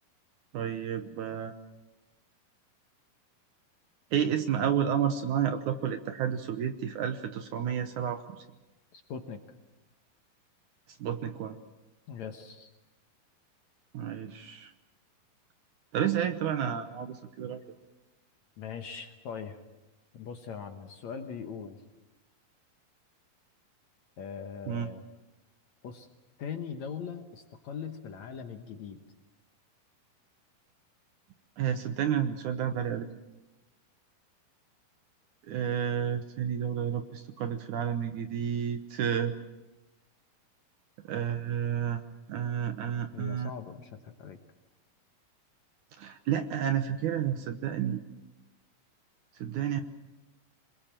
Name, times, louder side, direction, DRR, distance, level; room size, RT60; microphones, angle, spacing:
voice 1, 0.5-1.5 4.1-8.4 11.0-11.6 13.9-14.7 15.9-17.6 24.7-24.9 31.6-33.1 35.5-39.4 41.1-42.0 42.3-43.5 46.0-48.0 49.4-49.8, right 9 dB, 70° right, 8 dB, 2.1 m, -30 dB
voice 2, 8.9-9.4 12.1-12.7 18.6-19.6 20.1-21.8 24.2-25.0 25.8-26.1 26.4-29.0 43.1-44.4, left 6 dB, 60° left, 6 dB, 2.1 m, -40 dB
26.5 x 21.5 x 7.5 m, 1.0 s
omnidirectional pair, 4.3 m